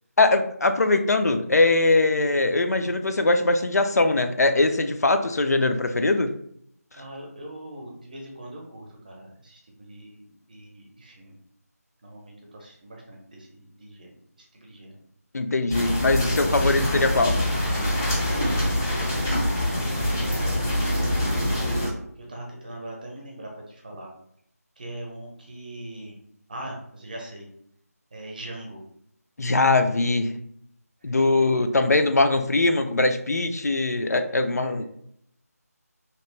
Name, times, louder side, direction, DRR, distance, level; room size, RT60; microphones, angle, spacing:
voice 1, 0.2-6.3 15.3-17.4 29.4-30.4 31.0-34.9, left 2 dB, 75° left, 7 dB, 0.4 m, -21 dB
voice 2, 6.9-11.4 12.0-14.1 14.4-15.0 18.8-18.9 19.3-20.5 20.8-21.4 22.2-24.1 24.8-26.2 26.5-27.5 28.1-28.8 31.0-31.5 34.5-34.8, right 1 dB, 30° right, 0 dB, 0.7 m, -41 dB
sound 1, 15.7-21.9, left 1 dB, 10° left, 0.4 m, -24 dB
2.9 x 2.5 x 3.1 m, 0.70 s
figure-of-eight pair, 165°, 9 cm